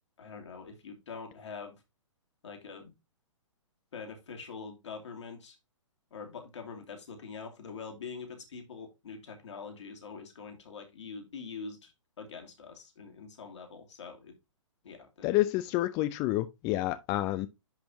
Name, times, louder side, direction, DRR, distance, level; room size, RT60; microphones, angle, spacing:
voice 1, 0.2-1.8 2.4-2.9 3.9-5.6 6.1-11.9 12.2-14.3 14.8-15.3, left 5 dB, 60° left, 2.8 m, -44 dB
voice 2, 15.2-17.5, left 16 dB, 20° left, 0.4 m, -29 dB
10.5 x 4.4 x 2.8 m
figure-of-eight pair, 125°, 17 cm